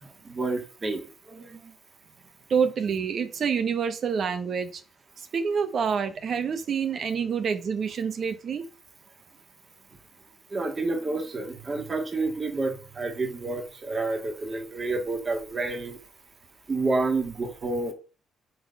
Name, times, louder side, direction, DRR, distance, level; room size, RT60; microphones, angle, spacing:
voice 1, 0.0-1.7 10.5-16.0 16.7-17.9, right 3 dB, 35° right, 3 dB, 2.5 m, -29 dB
voice 2, 2.5-4.8 5.2-8.6, right 6 dB, 55° right, 9 dB, 1.4 m, -27 dB
9.3 x 4.2 x 5.6 m, 0.35 s
cardioid pair, 90°, 0 cm